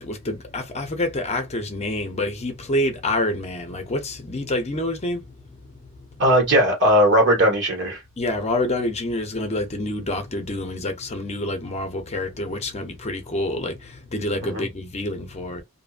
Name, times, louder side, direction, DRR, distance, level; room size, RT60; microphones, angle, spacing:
voice 1, 0.0-5.2 8.2-15.6, left 1 dB, 30° left, 0.6 m, -27 dB
voice 2, 6.2-8.0 14.4-14.7, equal, 55° right, 1.5 m, -18 dB
2.7 x 2.5 x 2.4 m
head